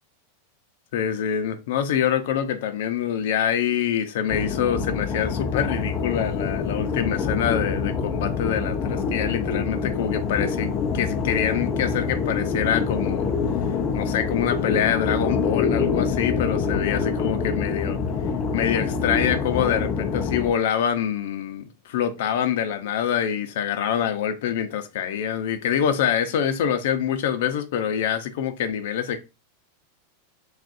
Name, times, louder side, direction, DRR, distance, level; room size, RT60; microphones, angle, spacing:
voice 1, 0.9-10.7 10.9-13.3 13.6-13.7 13.9-18.0 18.5-29.2, left 9 dB, 65° left, 0.7 m, -25 dB
sound 1, 4.3-20.5, left 5 dB, 25° left, 0.6 m, -26 dB
6.2 x 2.5 x 2.6 m
supercardioid pair, 150°, 0 cm